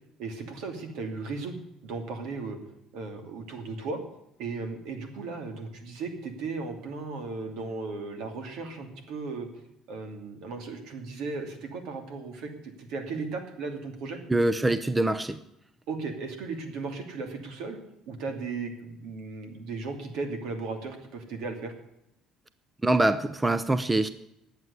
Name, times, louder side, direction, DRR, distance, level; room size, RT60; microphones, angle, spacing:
voice 1, 0.2-1.6 1.8-2.6 2.9-4.0 4.4-9.5 9.9-14.2 15.9-17.8 18.1-21.7, right 4 dB, 75° right, 5 dB, 2.7 m, -36 dB
voice 2, 14.3-15.4 22.8-24.1, right 2 dB, 10° right, 13 dB, 0.6 m, -24 dB
11.0 x 8.1 x 9.6 m, 0.81 s
cardioid pair, 120°, 0 cm